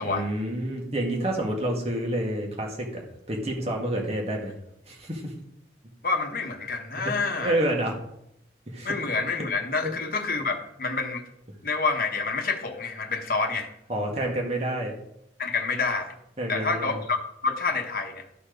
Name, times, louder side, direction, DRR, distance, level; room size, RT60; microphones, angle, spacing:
voice 1, 0.0-4.5 4.9-5.3 7.0-8.0 8.7-8.9 9.8-9.9 13.9-14.9 16.4-17.0, right 1 dB, 35° right, 0 dB, 1.8 m, -29 dB
voice 2, 6.0-7.6 8.8-11.3 11.6-13.7 15.4-16.1 16.5-18.3, left 4 dB, 50° left, 3 dB, 1.1 m, -28 dB
12.5 x 4.3 x 5.1 m, 0.78 s
head